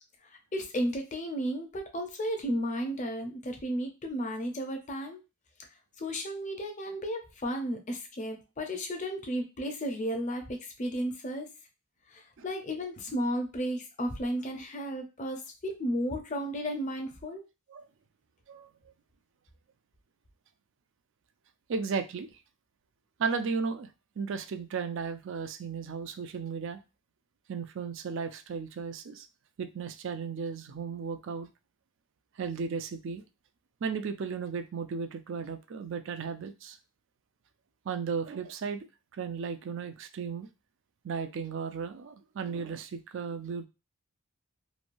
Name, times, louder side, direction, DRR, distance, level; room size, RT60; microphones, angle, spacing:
voice 1, 0.2-5.2 6.0-11.5 12.1-17.4, equal, 35° left, 0.6 m, -33 dB
voice 2, 21.7-22.3 23.2-23.9 24.2-26.8 27.5-29.3 29.6-31.5 32.4-33.2 33.8-36.8 37.9-38.9 39.1-40.5 41.0-43.7, right 5 dB, 60° right, 0.4 m, -35 dB
3.1 x 2.3 x 2.5 m
head